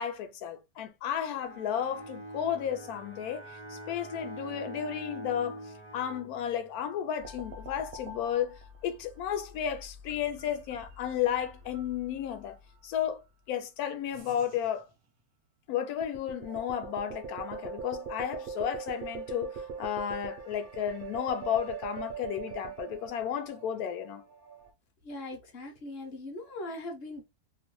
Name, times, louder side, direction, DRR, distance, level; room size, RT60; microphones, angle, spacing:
voice 1, 0.0-5.6 5.9-12.6 12.8-13.2 13.5-14.9 15.7-19.5 19.8-24.2, left 9 dB, 80° left, 1.1 m, -33 dB
Bowed string instrument, 1.2-7.0, right 1 dB, 15° left, 0.4 m, -44 dB
sound 1, 7.2-12.8 14.1-14.8 16.0-24.7, right 5 dB, 60° right, 0.5 m, -43 dB
voice 2, 25.0-27.2, left 2 dB, 50° left, 0.9 m, -40 dB
2.9 x 2.1 x 3.0 m
omnidirectional pair, 1.6 m